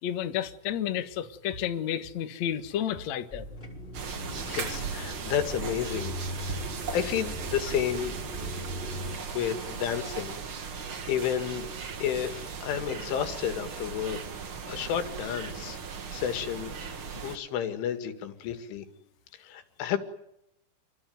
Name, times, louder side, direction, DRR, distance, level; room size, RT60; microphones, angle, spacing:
voice 1, 0.0-3.5, left 10 dB, 55° left, 2.0 m, -31 dB
sound 1, 3.3-9.2, left 1 dB, 10° left, 4.4 m, -39 dB
sound 2, 3.9-17.4, right 6 dB, 65° right, 1.3 m, -38 dB
voice 2, 4.3-6.6 6.9-8.1 9.3-10.4 10.8-11.7 12.0-14.2 14.7-15.8 16.1-18.9 19.4-20.0, left 9 dB, 85° left, 4.6 m, -31 dB
28.0 x 22.0 x 9.5 m
omnidirectional pair, 5.4 m